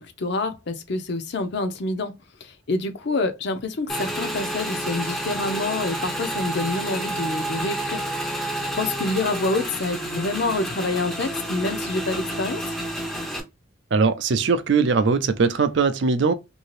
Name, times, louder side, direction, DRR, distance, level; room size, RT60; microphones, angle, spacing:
voice 1, 0.2-8.0 8.4-12.6, left 2 dB, 55° left, 0.5 m, -27 dB
Motorcycle / Engine, 3.9-13.4, right 1 dB, ahead, 0.5 m, -29 dB
voice 2, 13.9-16.3, right 4 dB, 60° right, 0.4 m, -20 dB
2.8 x 2.7 x 3.0 m
head